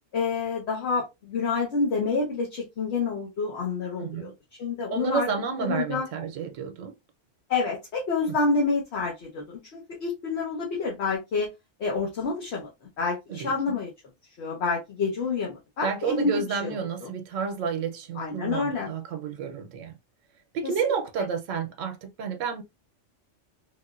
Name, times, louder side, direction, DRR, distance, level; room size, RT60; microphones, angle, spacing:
voice 1, 0.1-4.3 4.6-5.3 5.6-6.1 7.5-11.5 11.8-12.7 13.0-13.9 14.4-16.7 17.0-17.1 18.2-18.9, left 4 dB, 65° left, 1.1 m, -28 dB
voice 2, 4.0-4.3 4.9-6.9 8.3-8.4 13.3-13.8 15.8-19.9 20.5-22.6, right 6 dB, 85° right, 1.0 m, -31 dB
3.4 x 2.5 x 2.3 m
omnidirectional pair, 1.3 m